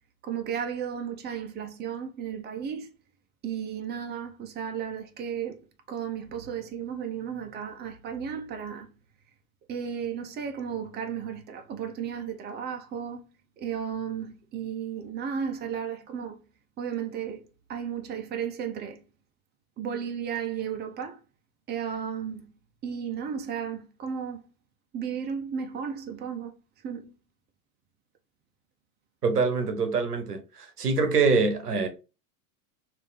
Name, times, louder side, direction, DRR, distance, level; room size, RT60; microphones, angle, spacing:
voice 1, 0.2-2.9 3.4-5.6 5.9-8.9 9.7-13.3 13.6-16.4 16.8-19.0 19.8-21.2 21.7-22.5 22.8-24.5 24.9-26.5 26.8-27.1, right 7 dB, 20° right, 0.7 m, -34 dB
voice 2, 29.2-31.9, right 4 dB, 85° right, 1.0 m, -25 dB
3.4 x 2.8 x 3.9 m
figure-of-eight pair, 85°, 46 cm